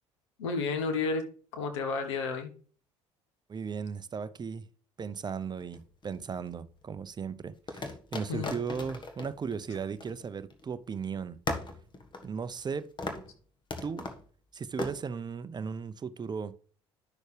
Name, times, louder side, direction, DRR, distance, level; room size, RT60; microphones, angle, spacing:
voice 1, 0.4-1.3 1.5-2.5 8.3-8.5, left 4 dB, 80° left, 1.3 m, -31 dB
voice 2, 3.5-4.7 5.0-11.4 12.2-12.9 13.8-14.1 14.5-16.5, right 6 dB, 30° right, 0.6 m, -36 dB
sound 1, 5.6-6.5 7.7-10.6 10.9-11.0 11.5-12.7 13.0-13.3 13.7-14.2 14.8-15.0, left 2 dB, 30° left, 1.4 m, -38 dB
10.5 x 6.3 x 3.3 m
hypercardioid pair, 60°, 15 cm